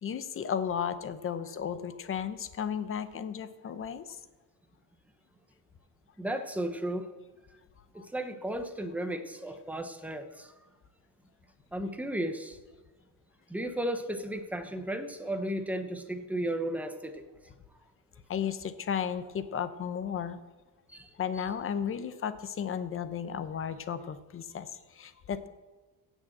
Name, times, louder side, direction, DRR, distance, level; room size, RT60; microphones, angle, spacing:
voice 1, 0.0-4.0 8.0-8.1 18.3-20.4 21.2-25.5, left 8 dB, 30° left, 12 dB, 0.8 m, -34 dB
voice 2, 6.2-7.1 7.9-10.5 11.7-12.6 13.5-17.2 20.9-21.1 21.4-21.5, right 1 dB, 5° right, 7 dB, 0.8 m, -34 dB
16.5 x 6.4 x 7.7 m, 1.2 s
cardioid pair, 170°, 40 cm